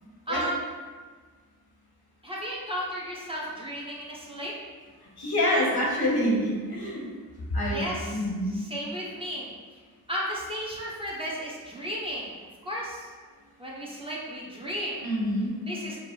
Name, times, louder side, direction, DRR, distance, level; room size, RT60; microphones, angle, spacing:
voice 1, 0.3-0.6 2.2-4.5 7.7-8.2 8.5-9.5 10.1-12.3 12.6-13.1 13.6-15.0 15.7-16.0, equal, 15° right, -5 dB, 1.0 m, -34 dB
voice 2, 5.2-7.0 7.5-8.6 15.0-15.5, equal, 85° left, -3 dB, 1.2 m, -26 dB
5.1 x 2.1 x 4.5 m, 1.5 s
wide cardioid pair, 80°, 37 cm